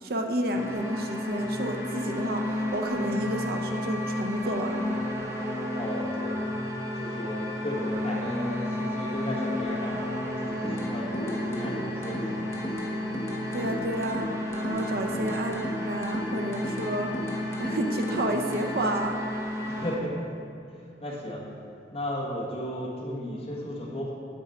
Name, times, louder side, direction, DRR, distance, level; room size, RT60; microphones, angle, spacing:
voice 1, 0.0-5.0 13.5-14.3 14.6-17.1 17.6-19.2, right 1 dB, 55° right, 3 dB, 0.6 m, -30 dB
sound 1, 0.5-19.9, left 1 dB, 15° right, 0.9 m, -32 dB
voice 2, 5.7-6.4 6.9-12.5 19.7-20.3 21.0-21.4 21.9-24.1, equal, 30° left, -4 dB, 1.4 m, -34 dB
sound 2, 10.6-18.6, equal, 15° left, 0.9 m, -37 dB
8.8 x 6.9 x 4.3 m, 2.6 s
head